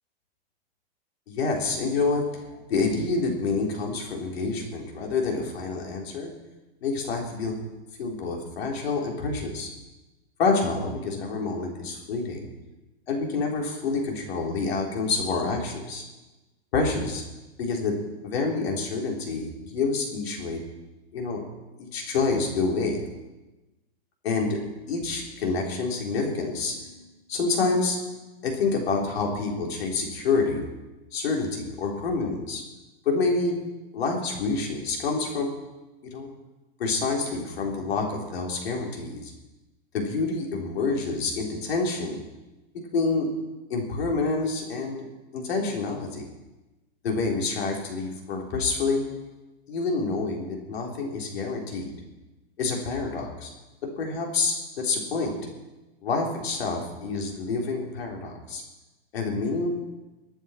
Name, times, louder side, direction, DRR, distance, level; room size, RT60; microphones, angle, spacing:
voice 1, 1.3-6.3 6.8-7.6 8.0-9.7 10.4-12.5 13.1-16.0 16.7-17.2 17.6-17.9 18.2-20.6 21.1-21.4 21.8-23.0 24.2-24.6 24.9-26.9 27.3-28.0 28.4-30.6 31.1-32.6 33.1-33.6 33.9-35.5 36.1-36.3 36.8-39.3 39.9-42.2 42.9-43.3 43.7-45.0 45.3-46.3 47.0-49.1 49.7-51.9 52.6-53.5 53.8-55.4 56.0-58.6 59.1-59.8, left 4 dB, 70° left, 0 dB, 3.9 m, -27 dB
24.5 x 9.2 x 4.5 m, 1.1 s
hypercardioid pair, 145°, 32 cm